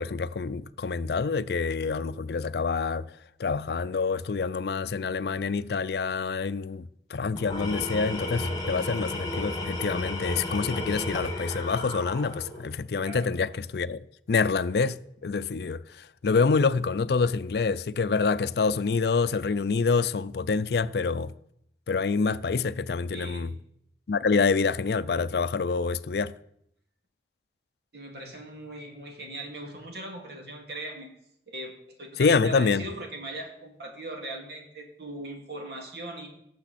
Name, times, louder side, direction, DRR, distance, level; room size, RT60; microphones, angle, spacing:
voice 1, 0.0-3.1 3.4-14.0 14.3-21.3 21.9-23.5 24.1-26.4 32.2-32.9, left 4 dB, 70° left, 0.4 m, -27 dB
Tools, 7.3-12.7, left 1 dB, 20° left, 1.6 m, -33 dB
voice 2, 13.0-13.4 23.1-23.5 27.9-31.1 31.5-36.3, right 1 dB, 70° right, 2.5 m, -39 dB
18.0 x 7.1 x 4.2 m
head